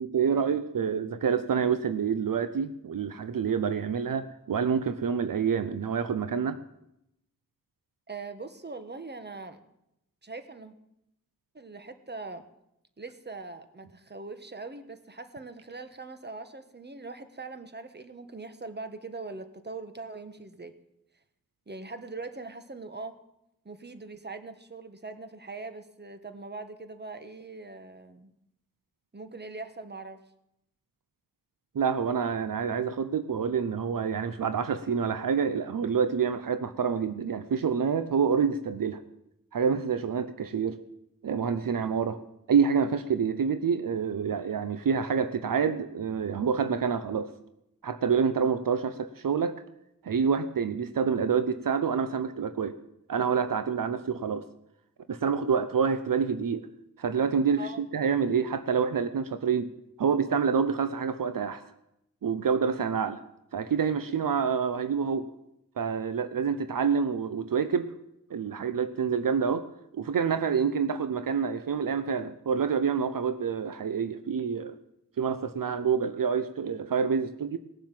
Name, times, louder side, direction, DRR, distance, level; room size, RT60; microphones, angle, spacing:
voice 1, 0.0-6.6 31.7-39.0 39.5-40.8 41.2-42.2 42.5-47.3 47.8-49.5 50.0-52.7 53.1-54.4 55.1-56.7 57.0-59.7 60.0-61.6 62.2-63.2 63.5-65.3 65.8-67.9 68.3-69.7 69.9-74.7 75.2-77.6, right 6 dB, 75° right, 11 dB, 0.8 m, -27 dB
voice 2, 8.1-9.6 10.2-10.7 11.5-12.5 13.0-20.7 21.7-23.2 23.6-28.3 29.1-30.2 57.6-57.8, right 3 dB, 30° right, 9 dB, 1.4 m, -41 dB
18.5 x 7.3 x 7.5 m, 0.82 s
cardioid pair, 55°, 34 cm